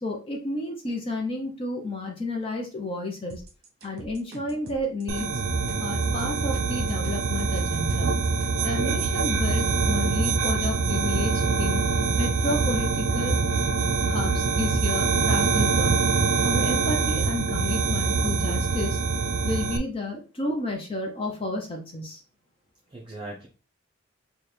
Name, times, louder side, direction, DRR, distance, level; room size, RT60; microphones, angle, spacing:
voice 1, 0.0-3.4 3.8-5.3 5.8-8.2 8.6-11.8 12.2-13.4 14.1-16.1 16.4-19.0 19.4-22.2, left 2 dB, 25° left, 1 dB, 0.6 m, -31 dB
sound 1, 3.3-8.7, right 1 dB, 50° right, 0.9 m, -44 dB
sound 2, 5.1-19.8, right 4 dB, 80° right, 0.4 m, -24 dB
voice 2, 22.9-23.5, right 2 dB, 25° right, -4 dB, 0.6 m, -39 dB
4.2 x 2.3 x 3.3 m, 0.35 s
head